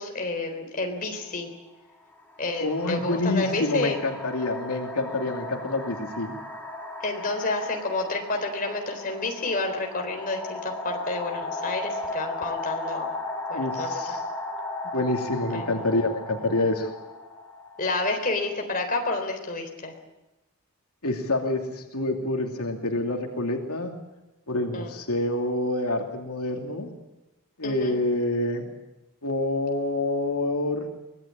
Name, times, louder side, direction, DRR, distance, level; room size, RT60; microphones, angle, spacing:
voice 1, 0.0-1.5 2.4-4.0 7.0-13.1 13.5-14.2 15.5-15.8 17.8-19.9 24.7-24.9 27.6-28.0, left 2 dB, 40° left, 3 dB, 4.0 m, -30 dB
sound 1, 1.0-1.2 2.1-18.8, left 2 dB, 10° left, 4.2 m, -36 dB
voice 2, 2.6-6.3 13.5-14.2 14.9-16.9 21.0-23.9 24.5-26.9 27.6-28.7 29.2-30.9, left 2 dB, 85° left, 2 dB, 2.7 m, -27 dB
24.0 x 18.5 x 8.7 m, 1.0 s
head